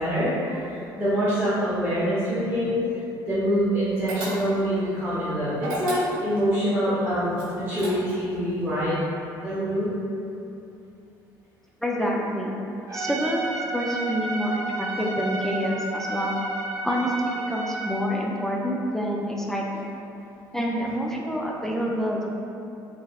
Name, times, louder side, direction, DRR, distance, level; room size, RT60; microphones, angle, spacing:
voice 1, 0.0-2.9 3.3-8.9 9.4-9.9, equal, 15° right, -13 dB, 0.8 m, -25 dB
sound 1, 4.1-4.8 5.6-6.5 7.3-8.3, right 1 dB, 90° right, 1.2 m, -34 dB
voice 2, 11.8-12.6 12.9-16.3 16.8-19.9 20.5-22.3, equal, 5° left, -3 dB, 0.3 m, -27 dB
Trumpet, 12.9-18.1, right 2 dB, 40° right, 0.9 m, -31 dB
3.3 x 2.4 x 2.3 m, 2.7 s
cardioid pair, 90°, 9 cm